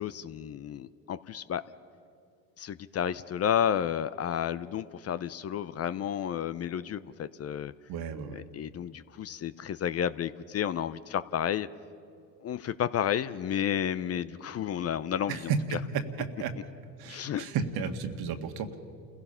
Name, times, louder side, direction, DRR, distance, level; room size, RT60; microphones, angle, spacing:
voice 1, 0.0-1.6 2.6-7.7 8.3-11.7 12.4-15.5 17.1-17.4, left 9 dB, 35° left, 15 dB, 0.6 m, -31 dB
voice 2, 7.9-8.4 15.3-16.5 17.0-18.8, right 6 dB, 60° right, 7 dB, 1.8 m, -33 dB
28.5 x 16.5 x 5.7 m, 2.5 s
supercardioid pair, 80°, 41 cm